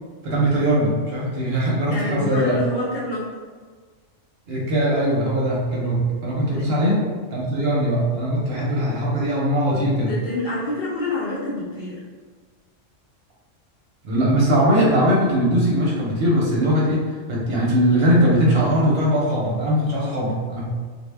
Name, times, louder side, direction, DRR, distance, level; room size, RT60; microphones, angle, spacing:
voice 1, 0.2-2.6 4.5-7.0 7.3-10.1 14.0-20.7, equal, 65° right, -4 dB, 0.7 m, -20 dB
voice 2, 1.9-3.3 6.5-6.8 9.7-12.0, left 2 dB, 60° left, -5 dB, 0.7 m, -28 dB
2.0 x 2.0 x 3.2 m, 1.5 s
omnidirectional pair, 1.3 m